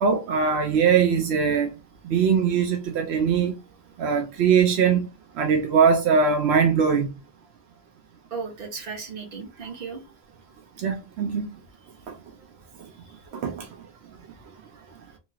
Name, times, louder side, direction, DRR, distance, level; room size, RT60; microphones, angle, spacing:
voice 1, 0.0-1.7 2.0-3.5 4.0-5.1 5.4-7.1 10.8-11.5 13.3-13.7, right 6 dB, 85° right, 0.8 m, -21 dB
voice 2, 8.3-10.0 12.8-13.2, right 5 dB, 65° right, 1.1 m, -36 dB
2.9 x 2.8 x 2.3 m
omnidirectional pair, 1.1 m